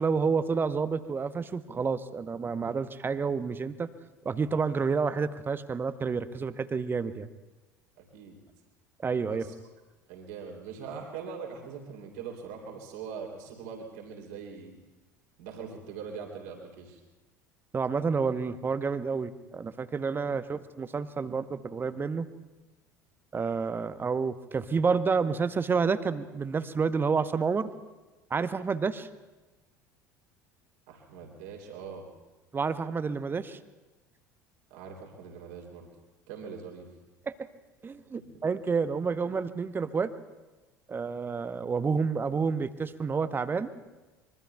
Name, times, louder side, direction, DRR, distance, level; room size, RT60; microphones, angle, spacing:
voice 1, 0.0-3.9 4.2-7.3 9.0-9.4 17.7-22.3 23.3-27.7 28.3-29.1 32.5-33.6 37.3-37.4 37.8-40.1 40.9-43.7, right 5 dB, 25° right, 12 dB, 0.9 m, -29 dB
voice 2, 8.0-8.4 9.3-9.5 10.1-14.8 15.4-17.0 30.9-32.1 34.7-35.9 36.3-36.9 38.1-38.2, right 6 dB, 65° right, 0 dB, 3.1 m, -42 dB
25.5 x 23.0 x 2.3 m, 1.1 s
figure-of-eight pair, 70°, 9 cm